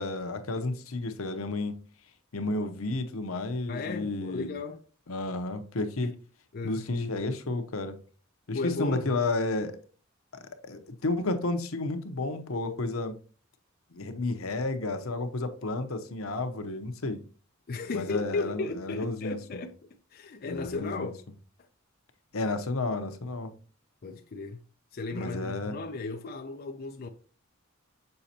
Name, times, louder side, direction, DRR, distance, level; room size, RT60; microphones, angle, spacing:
voice 1, 0.0-1.7 2.3-4.5 5.1-6.1 6.6-8.0 8.5-9.8 10.3-13.1 13.9-17.2 17.9-19.4 20.5-21.1 22.3-23.5 25.1-25.8, left 2 dB, 85° left, 0.9 m, -31 dB
voice 2, 3.7-4.8 6.0-6.2 6.5-6.9 8.5-9.1 17.7-21.2 24.0-24.6 24.9-27.1, left 3 dB, 45° left, 0.5 m, -35 dB
6.7 x 5.0 x 2.8 m
head